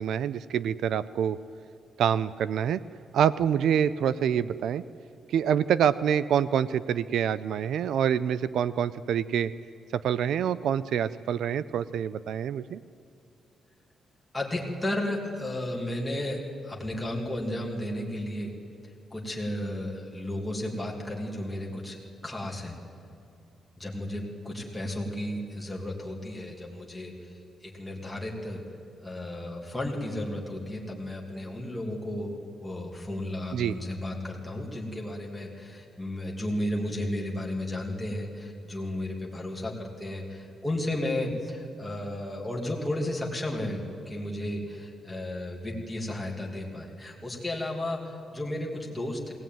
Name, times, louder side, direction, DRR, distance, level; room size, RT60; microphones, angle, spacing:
voice 1, 0.0-1.4 2.0-2.8 3.1-4.8 5.3-9.5 9.9-12.8 33.5-33.8, right 9 dB, 70° right, 16 dB, 0.4 m, -26 dB
voice 2, 14.3-18.5 19.1-22.8 23.8-27.3 27.6-28.6 29.0-49.3, left 1 dB, 5° left, -2 dB, 2.6 m, -33 dB
20.5 x 18.0 x 9.2 m, 2.6 s
wide cardioid pair, 175°, 0 cm